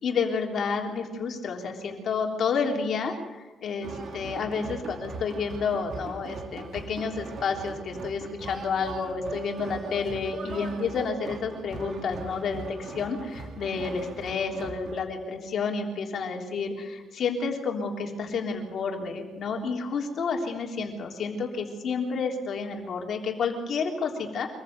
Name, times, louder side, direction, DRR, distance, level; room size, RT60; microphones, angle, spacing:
voice 1, 0.0-24.5, left 5 dB, 60° left, 2 dB, 3.5 m, -30 dB
sound 1, 3.8-15.0, right 4 dB, 55° right, 2.8 m, -40 dB
24.5 x 14.5 x 8.1 m, 1.2 s
cardioid pair, 90°, 0 cm